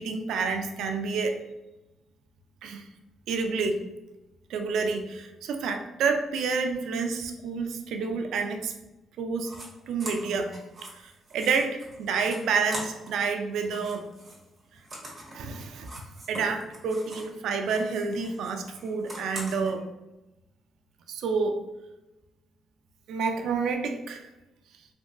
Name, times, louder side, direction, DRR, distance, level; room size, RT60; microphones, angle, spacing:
voice 1, 0.0-1.4 2.6-2.9 3.3-3.8 4.5-8.7 9.2-9.5 9.9-10.5 10.8-14.1 15.3-15.9 16.3-19.8 21.1-21.6 23.1-24.3, right 5 dB, 80° right, 5 dB, 0.3 m, -29 dB
sound 1, 9.4-9.7 10.0-13.2 13.5-17.4 17.6-19.7, right 1 dB, 30° right, 1.2 m, -43 dB
3.5 x 2.6 x 2.3 m, 1.0 s
cardioid pair, 90°, 0 cm